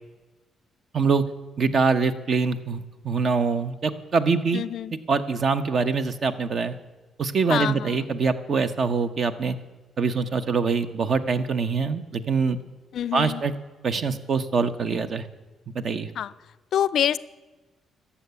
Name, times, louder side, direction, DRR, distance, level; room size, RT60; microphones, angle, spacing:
voice 1, 0.9-1.2 1.6-4.6 5.1-6.8 7.2-9.6 10.0-12.6 13.1-13.5 13.8-15.3 15.7-16.1, right 5 dB, 50° right, 10 dB, 0.9 m, -24 dB
voice 2, 4.5-4.9 7.5-8.0 12.9-13.4 16.2-16.3 16.7-17.2, left 10 dB, 65° left, 19 dB, 0.4 m, -26 dB
12.5 x 7.2 x 9.6 m, 1.2 s
cardioid pair, 90°, 0 cm